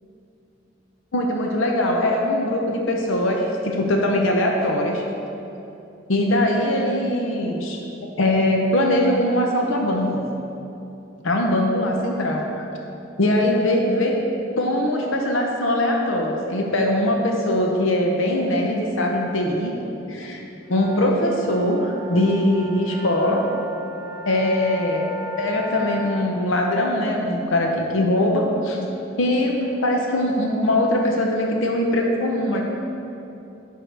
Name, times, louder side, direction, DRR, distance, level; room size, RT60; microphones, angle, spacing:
voice 1, 1.1-5.0 6.1-7.8 8.2-10.2 11.2-12.7 13.2-14.2 14.6-19.7 20.1-20.4 20.7-23.4 24.3-25.0 25.4-28.8 29.2-32.6, left 1 dB, 70° left, 1 dB, 0.7 m, -21 dB
sound 1, 20.6-26.3, left 1 dB, 20° right, 0.5 m, -37 dB
11.0 x 4.6 x 3.4 m, 2.9 s
head